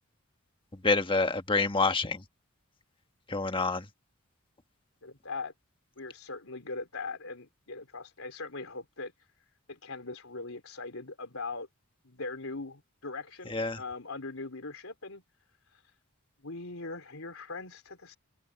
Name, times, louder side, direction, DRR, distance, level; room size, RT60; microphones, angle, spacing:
voice 1, 0.7-2.2 3.3-3.9 13.5-13.8, left 3 dB, 25° left, 1.4 m, -27 dB
voice 2, 5.0-5.5 6.0-9.1 9.7-11.7 12.0-15.2 16.4-18.2, left 3 dB, 75° left, 4.2 m, -40 dB
open air
head